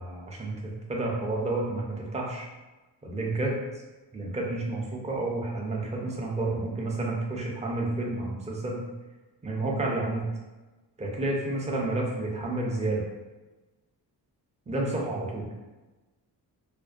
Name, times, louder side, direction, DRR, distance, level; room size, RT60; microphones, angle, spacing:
voice 1, 0.0-2.5 3.0-3.6 4.1-8.8 9.4-10.2 11.0-13.0 14.7-15.5, right 2 dB, 20° right, -2 dB, 0.4 m, -30 dB
2.5 x 2.1 x 2.3 m, 1.2 s
wide cardioid pair, 135°, 41 cm